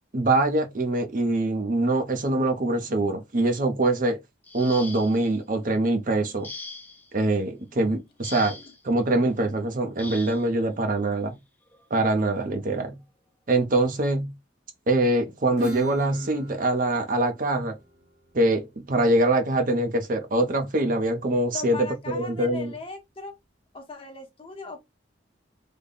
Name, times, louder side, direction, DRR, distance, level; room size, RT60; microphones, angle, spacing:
voice 1, 0.1-4.2 4.5-6.5 7.1-8.6 8.8-11.4 11.9-13.0 13.5-14.3 14.9-17.8 18.3-22.7, right 2 dB, 45° right, 0.7 m, -24 dB
sound 1, 4.4-5.3 6.4-7.1 8.2-8.8 10.0-10.5 11.7-11.8 12.3-12.5, left 3 dB, 10° left, 0.6 m, -40 dB
Acoustic guitar / Strum, 15.6-20.9, equal, 65° right, 1.6 m, -43 dB
voice 2, 21.5-23.3 23.7-24.8, left 3 dB, 30° left, 1.0 m, -39 dB
3.3 x 2.2 x 3.9 m
head